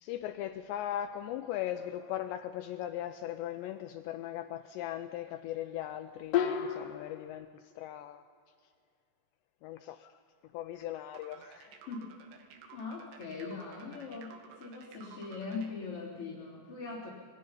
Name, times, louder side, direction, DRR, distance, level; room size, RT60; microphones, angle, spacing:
voice 1, 0.0-8.2 9.6-10.2 10.5-11.8, left 12 dB, 85° left, 8 dB, 2.5 m, -39 dB
sound 1, 1.7-2.4 6.3-7.3, left 9 dB, 65° left, 2.2 m, -33 dB
sound 2, 11.1-15.7, right 7 dB, 85° right, 4.1 m, -54 dB
voice 2, 11.9-12.2 12.7-17.1, left 4 dB, 30° left, -7 dB, 3.5 m, -41 dB
26.5 x 20.5 x 5.6 m, 2.2 s
omnidirectional pair, 5.7 m